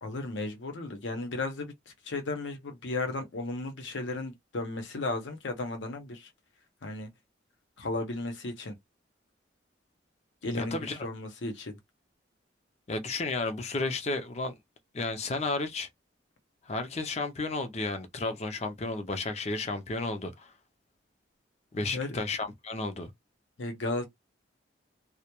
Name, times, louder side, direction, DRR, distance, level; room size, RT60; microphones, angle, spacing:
voice 1, 0.0-1.7 2.0-6.3 6.8-7.1 7.8-8.8 10.4-11.8 21.9-22.2 23.6-24.1, left 2 dB, 80° left, 0.7 m, -34 dB
voice 2, 10.5-11.0 12.9-14.6 14.9-15.9 16.7-20.5 21.7-23.1, left 3 dB, 35° left, 0.4 m, -32 dB
2.2 x 2.0 x 2.9 m
head